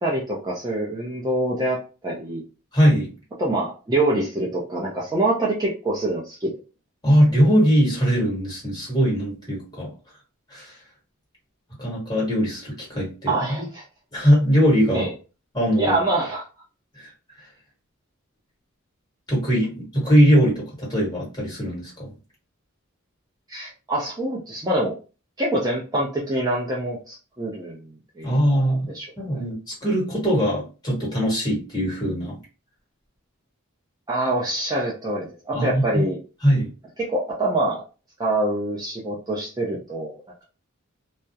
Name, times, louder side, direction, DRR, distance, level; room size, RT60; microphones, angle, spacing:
voice 1, 0.0-2.4 3.4-6.5 13.3-13.8 14.9-15.1 15.8-16.4 23.5-24.9 25.4-29.4 34.1-36.2 37.0-37.8 38.2-40.1, right 1 dB, 20° right, -4 dB, 0.4 m, -25 dB
voice 2, 2.7-3.1 7.0-9.9 10.5-10.7 11.8-13.6 14.1-15.1 15.5-16.0 17.0-17.1 19.3-21.9 28.2-28.9 29.2-32.4 35.5-36.0 36.4-36.7, equal, 20° left, -5 dB, 1.2 m, -21 dB
2.3 x 2.0 x 2.7 m, 0.34 s
head